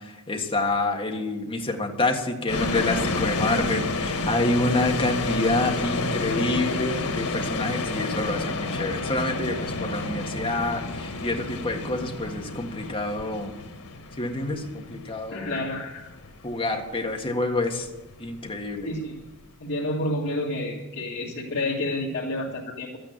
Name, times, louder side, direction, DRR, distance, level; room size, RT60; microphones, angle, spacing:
voice 1, 0.0-13.5 14.2-15.5 16.4-17.9 18.2-18.9, left 2 dB, 25° left, 2 dB, 1.6 m, -27 dB
sound 1, 2.5-19.5, left 3 dB, 90° left, 1.7 m, -30 dB
voice 2, 15.3-16.1 18.8-19.2 19.6-23.0, left 1 dB, 50° left, -5 dB, 2.1 m, -29 dB
12.5 x 9.0 x 8.9 m, 1.1 s
head